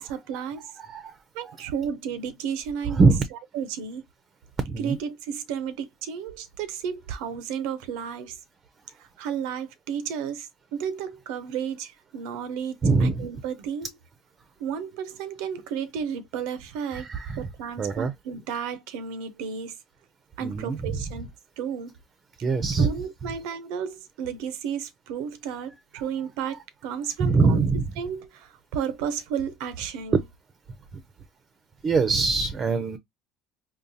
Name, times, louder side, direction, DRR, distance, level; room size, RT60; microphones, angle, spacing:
voice 1, 0.0-0.7 1.3-3.0 3.5-4.0 4.8-8.4 9.0-13.9 14.6-17.1 17.4-19.8 20.4-21.3 21.6-21.9 22.8-27.6 28.0-30.2, right 7 dB, 80° right, 0.6 m, -33 dB
voice 2, 0.8-1.2 1.4-1.6 2.9-3.2 4.6-5.0 12.8-13.3 16.9-17.4 17.8-18.1 20.4-21.0 22.4-22.9 27.2-27.8 30.1-30.2 31.8-33.0, right 4 dB, 30° right, 0.6 m, -23 dB
3.8 x 2.3 x 2.7 m
supercardioid pair, 105°, 0 cm